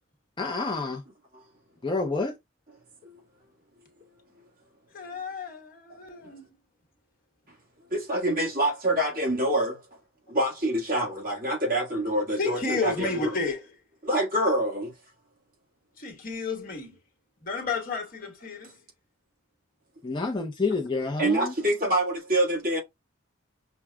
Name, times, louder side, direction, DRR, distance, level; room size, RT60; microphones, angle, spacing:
voice 1, 0.4-1.0 1.8-2.3 20.0-21.5, left 3 dB, 25° left, 0.5 m, -28 dB
voice 2, 4.9-6.4 12.4-13.7 16.0-17.0 17.4-18.8, left 4 dB, 45° left, 1.3 m, -32 dB
voice 3, 7.9-9.9 10.3-13.3 14.0-14.9 21.2-22.8, right 1 dB, 45° right, 1.6 m, -26 dB
5.9 x 2.3 x 2.2 m
head